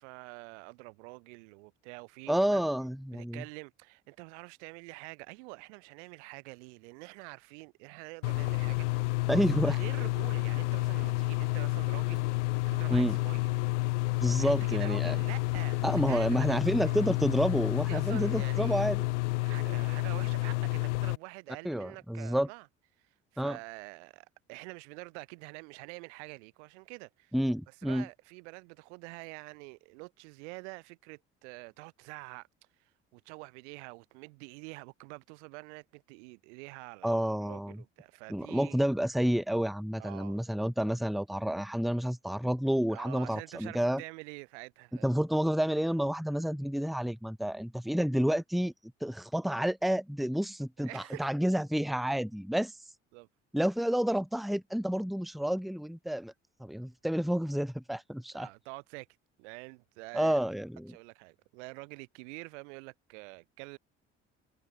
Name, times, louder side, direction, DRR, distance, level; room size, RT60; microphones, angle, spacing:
voice 1, 0.0-2.6 3.1-13.7 14.4-17.1 17.9-18.9 19.4-22.7 23.0-27.3 27.7-32.5 32.8-38.9 40.0-40.4 42.9-45.1 50.8-51.3 53.1-53.3 58.3-59.1 59.4-60.4 60.9-63.8, right 30 dB, 70° right, 4.3 m, -47 dB
voice 2, 2.3-3.4 9.3-9.8 12.9-13.2 14.2-15.2 15.8-19.0 21.7-22.5 23.4-23.6 27.3-28.1 37.0-37.8 38.3-44.0 45.0-48.7 49.0-52.7 53.5-56.3 56.6-58.5 60.1-61.0, equal, ahead, 1.8 m, -29 dB
sound 1, 8.2-21.2, left 22 dB, 75° left, 0.8 m, -30 dB
figure-of-eight pair, 50°, 36 cm